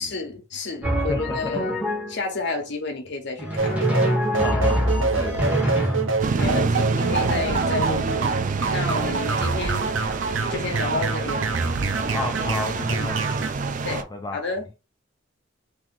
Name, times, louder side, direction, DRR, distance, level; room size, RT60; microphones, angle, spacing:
voice 1, 0.0-1.7 2.1-3.8 6.4-8.3 8.7-9.9 10.5-11.5 12.9-13.1 13.8-14.1 14.3-14.7, left 3 dB, 65° left, 1.1 m, -31 dB
Drum, 0.8-2.3 3.4-6.4, equal, 10° right, 1.6 m, -25 dB
voice 2, 1.1-1.6 4.4-6.1 12.1-13.4 13.9-14.4, left 2 dB, 20° left, 0.4 m, -32 dB
sound 1, 3.6-13.5, right 4 dB, 85° right, 0.7 m, -26 dB
sound 2, 6.2-14.0, right 4 dB, 45° right, 0.4 m, -27 dB
3.0 x 2.8 x 3.7 m
head